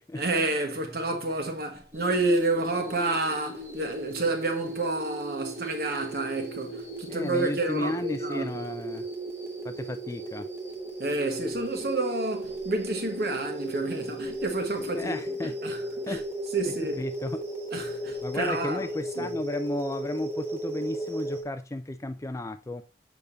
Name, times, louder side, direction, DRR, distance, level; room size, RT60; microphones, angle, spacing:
voice 1, 0.1-8.5 11.0-15.2 15.4-16.2 16.5-17.0 17.7-18.9 19.1-19.3, right 2 dB, 55° right, 1.4 m, -29 dB
sound 1, 1.9-21.4, right 1 dB, 15° right, 1.2 m, -36 dB
voice 2, 7.1-9.1 9.6-10.5 15.0-15.5 16.1-16.2 17.0-17.5 18.2-22.8, left 1 dB, 15° left, 0.3 m, -33 dB
6.7 x 5.2 x 2.7 m
head